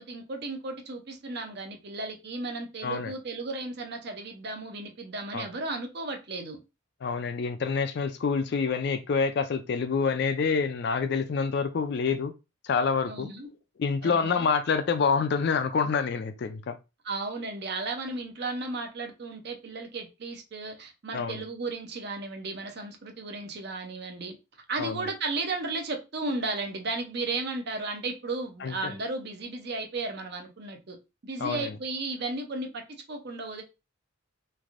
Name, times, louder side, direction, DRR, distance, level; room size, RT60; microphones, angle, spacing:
voice 1, 0.0-6.6 13.0-13.5 14.0-14.5 17.0-24.3 24.7-31.0 31.2-33.6, right 3 dB, 50° right, 0.6 m, -34 dB
voice 2, 7.0-12.3 12.6-13.3 13.8-16.8 21.1-21.4 24.8-25.0 28.6-28.9 31.4-31.7, left 5 dB, 50° left, 0.3 m, -27 dB
3.2 x 2.6 x 2.4 m
head